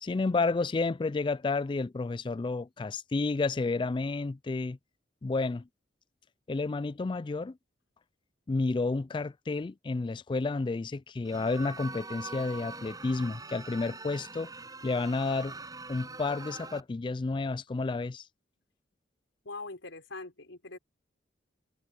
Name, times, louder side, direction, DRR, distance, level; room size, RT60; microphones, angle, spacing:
voice 1, 0.0-4.8 5.2-5.7 6.5-7.6 8.5-14.5 14.8-15.6 15.9-18.3, left 3 dB, 25° left, 0.3 m, -31 dB
sound 1, 11.2-16.8, right 3 dB, 20° right, 6.7 m, -43 dB
voice 2, 19.4-20.8, left 3 dB, 90° left, 4.3 m, -42 dB
head